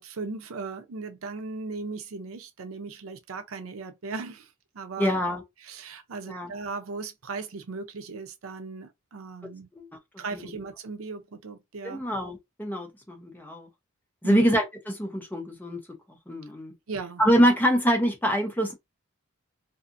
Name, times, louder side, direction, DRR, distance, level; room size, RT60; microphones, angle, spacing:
voice 1, 0.0-4.5 4.7-5.2 5.6-9.7 10.2-12.0 14.2-14.5 16.9-17.2, right 4 dB, 90° right, 0.6 m, -37 dB
voice 2, 5.0-5.4 6.3-6.5 9.8-9.9 11.8-13.7 14.2-14.6 15.0-15.8 16.3-16.7 17.2-18.7, equal, 10° left, 0.6 m, -24 dB
2.6 x 2.5 x 2.5 m
head